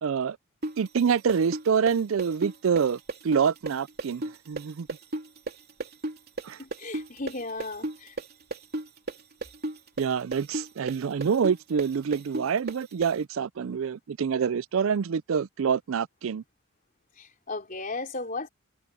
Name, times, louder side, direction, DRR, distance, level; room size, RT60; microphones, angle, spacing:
voice 1, 0.0-0.4 0.8-4.9 6.4-6.6 10.0-16.4, right 6 dB, 65° right, 0.4 m, -26 dB
sound 1, 0.6-8.3 8.5-13.1, right 2 dB, 50° right, 3.1 m, -33 dB
voice 2, 6.6-8.2 17.2-18.5, left 3 dB, 40° left, 4.3 m, -35 dB
head